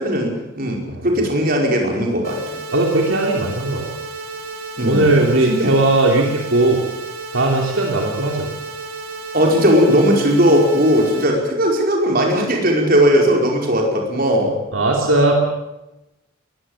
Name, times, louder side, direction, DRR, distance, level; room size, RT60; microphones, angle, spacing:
voice 1, 0.0-2.4 4.8-5.1 5.5-5.7 9.3-14.5, equal, 45° right, 1 dB, 5.0 m, -17 dB
sound 1, 2.2-11.2, right 3 dB, 85° right, 4.9 m, -32 dB
voice 2, 2.7-3.9 4.8-6.8 7.3-8.5 14.7-15.4, right 2 dB, 70° right, 0 dB, 3.2 m, -17 dB
22.0 x 15.0 x 8.8 m, 0.96 s
head